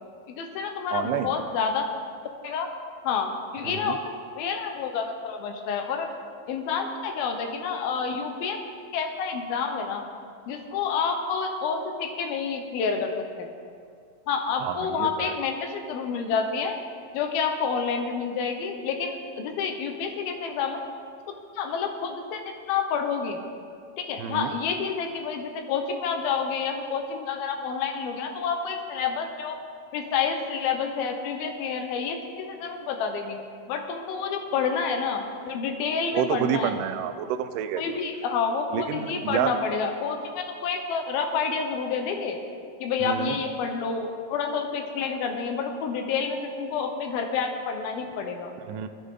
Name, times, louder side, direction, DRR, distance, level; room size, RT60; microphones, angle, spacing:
voice 1, 0.3-1.9 2.4-2.7 3.0-4.0 4.4-6.1 6.5-8.6 8.9-10.0 10.5-13.5 14.3-16.8 17.1-20.8 21.5-23.4 24.0-29.6 29.9-36.8 37.8-42.4 42.8-48.5, left 5 dB, 85° left, 4 dB, 2.9 m, -29 dB
voice 2, 0.9-1.3 3.6-4.0 14.6-15.3 24.2-24.5 36.1-37.9 38.7-39.5 43.0-43.4 48.7-48.9, right 10 dB, 75° right, 8 dB, 2.1 m, -29 dB
16.5 x 13.0 x 3.8 m, 2.2 s
omnidirectional pair, 4.2 m